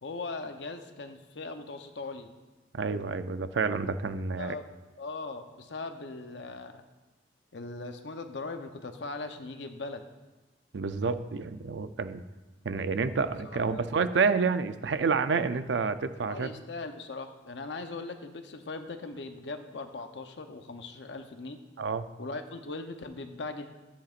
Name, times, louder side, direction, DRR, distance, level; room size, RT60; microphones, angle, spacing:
voice 1, 0.0-2.3 4.4-4.7 5.0-6.8 7.5-10.0 13.4-13.9 16.3-21.6 22.2-23.7, left 3 dB, 75° left, 6 dB, 0.8 m, -39 dB
voice 2, 2.7-4.6 10.7-12.2 12.6-16.5 21.8-22.0, right 4 dB, 85° right, 11 dB, 0.5 m, -29 dB
13.5 x 8.5 x 2.5 m, 1.1 s
head